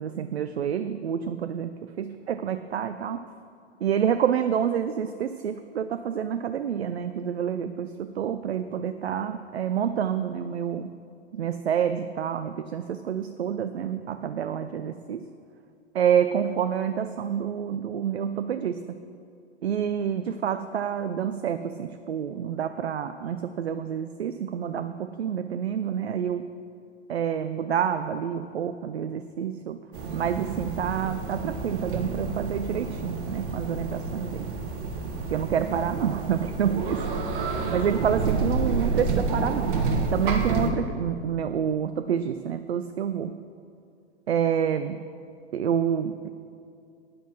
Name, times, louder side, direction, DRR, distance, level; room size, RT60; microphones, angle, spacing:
voice 1, 0.0-1.7 2.0-3.2 3.8-10.9 11.3-15.2 15.9-18.8 19.6-26.5 27.1-29.8 30.1-34.4 35.3-37.1 37.7-39.9 40.1-43.4 44.3-45.0 45.5-46.3, right 8 dB, 65° right, 10 dB, 0.6 m, -28 dB
sound 1, 29.9-40.7, right 4 dB, 45° right, 1.6 m, -29 dB
9.5 x 9.2 x 6.2 m, 2.4 s
figure-of-eight pair, 100°, 34 cm